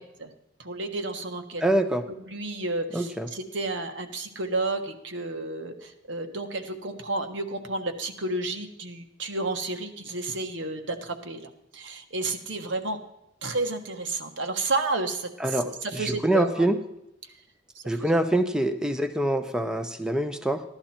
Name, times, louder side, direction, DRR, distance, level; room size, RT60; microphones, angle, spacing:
voice 1, 0.6-1.6 2.3-13.0 13.4-16.7 17.7-18.1, right 2 dB, 75° right, 5 dB, 1.4 m, -31 dB
voice 2, 1.6-2.0 2.9-3.3 15.4-16.8 17.9-20.6, right 1 dB, 5° right, 7 dB, 0.6 m, -25 dB
15.5 x 11.5 x 4.4 m, 0.86 s
head